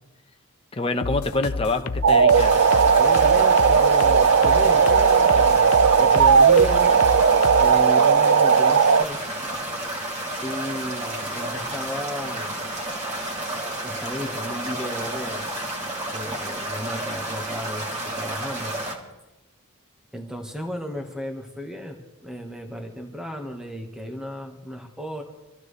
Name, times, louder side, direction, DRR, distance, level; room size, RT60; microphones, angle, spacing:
voice 1, 0.7-2.7, left 2 dB, 25° left, 5 dB, 1.0 m, -26 dB
sound 1, 1.0-7.8, left 4 dB, 80° left, 0.7 m, -31 dB
sound 2, 2.0-9.0, right 6 dB, 60° right, 0.4 m, -16 dB
sound 3, 2.3-19.0, right 1 dB, 30° right, 2.9 m, -31 dB
voice 2, 3.0-7.0 7.5-9.2 10.4-12.7 13.8-15.5 16.1-18.7 20.1-25.2, equal, 5° right, 2 dB, 1.4 m, -34 dB
26.5 x 14.5 x 3.3 m, 1.0 s
head